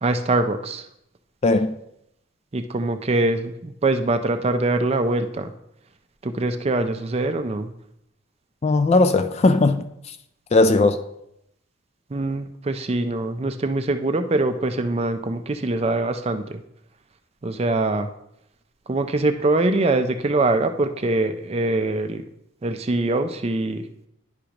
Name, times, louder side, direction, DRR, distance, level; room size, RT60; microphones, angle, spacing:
voice 1, 0.0-0.9 2.5-5.5 6.2-7.7 12.1-16.6 17.4-18.1 18.9-22.2 22.6-23.8, right 2 dB, 30° right, 0.4 m, -23 dB
voice 2, 1.4-1.7 8.6-10.2 10.5-11.0, left 2 dB, 30° left, 0.3 m, -18 dB
10.5 x 5.0 x 2.9 m
head